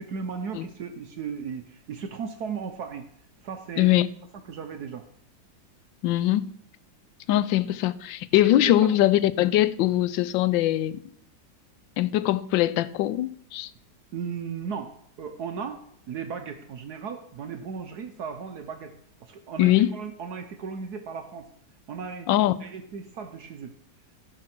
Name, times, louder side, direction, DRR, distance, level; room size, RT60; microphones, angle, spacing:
voice 1, 0.0-3.1 3.4-3.9 4.5-5.1 8.6-9.0 14.1-15.8 16.1-21.5 21.9-22.3 22.6-23.7, right 6 dB, 65° right, 1.3 m, -36 dB
voice 2, 3.8-4.1 6.0-6.5 7.3-11.0 12.0-13.7 19.6-19.9 22.3-22.5, left 14 dB, 85° left, 1.3 m, -22 dB
14.5 x 5.9 x 6.0 m
omnidirectional pair, 2.0 m